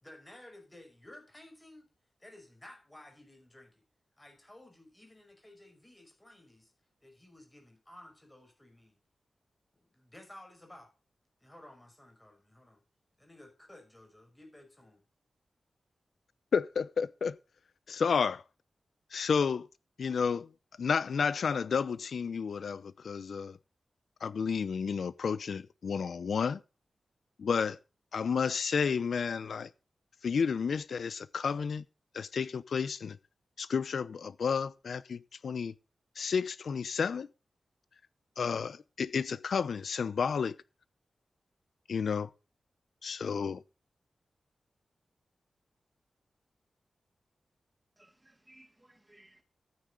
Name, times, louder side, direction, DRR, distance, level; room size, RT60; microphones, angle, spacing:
voice 1, 0.0-1.9 2.2-3.8 4.2-6.7 7.0-9.0 9.7-10.9 11.4-12.8 13.2-15.0, left 1 dB, 10° left, 5.5 m, -54 dB
voice 2, 16.5-17.4 17.9-18.4 19.1-19.7 20.0-20.5 20.8-23.6 24.2-26.6 27.4-27.8 28.1-29.7 30.2-31.8 32.1-33.2 33.6-35.7 36.2-37.3 38.4-40.5 41.9-42.3 43.0-43.6, left 6 dB, 75° left, 0.7 m, -31 dB
voice 3, 48.0-49.4, right 1 dB, 15° right, 1.9 m, -61 dB
14.0 x 9.4 x 4.0 m
wide cardioid pair, 155°, 0 cm